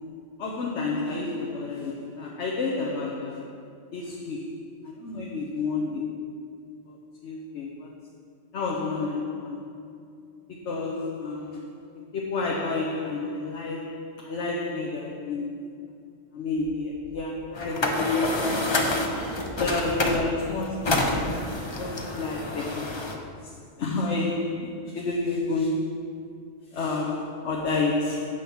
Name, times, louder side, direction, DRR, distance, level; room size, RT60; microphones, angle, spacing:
voice 1, 0.0-3.5 3.9-6.3 7.2-7.9 8.5-9.6 10.5-11.8 12.1-15.6 16.3-18.9 19.6-21.3 21.8-23.2 23.8-26.1 26.7-28.3, left 3 dB, 85° left, 1.2 m, -30 dB
sound 1, 17.5-20.3 20.6-23.1, left 2 dB, 30° left, 0.7 m, -27 dB
7.8 x 6.2 x 5.6 m
omnidirectional pair, 1.1 m